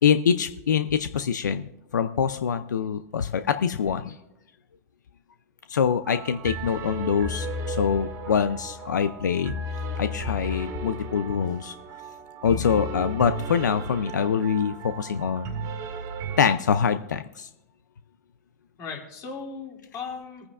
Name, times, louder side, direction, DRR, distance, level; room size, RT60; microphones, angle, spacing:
voice 1, 0.0-4.2 5.7-9.6 10.0-11.7 12.4-15.5 16.4-17.5, left 7 dB, 85° left, 11 dB, 0.5 m, -24 dB
sound 1, 6.0-16.6, right 1 dB, 35° right, 1.8 m, -34 dB
voice 2, 12.5-12.8 18.8-20.5, left 5 dB, 35° left, -1 dB, 2.9 m, -37 dB
23.0 x 9.5 x 2.5 m, 0.90 s
hypercardioid pair, 120°, 9 cm